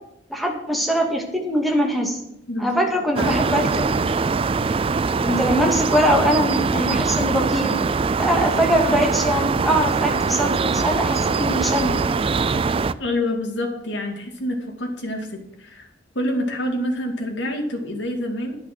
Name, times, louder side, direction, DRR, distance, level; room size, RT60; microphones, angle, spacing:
voice 1, 0.3-2.2 2.6-4.1 5.2-7.7 8.2-12.0, equal, ahead, 1 dB, 2.2 m, -22 dB
voice 2, 2.5-2.8 3.1-3.3 13.0-15.9 16.1-18.6, left 1 dB, 75° left, 2 dB, 2.5 m, -27 dB
sound 1, 3.2-12.9, right 4 dB, 30° right, 0.4 m, -22 dB
11.0 x 10.5 x 6.0 m, 0.78 s
head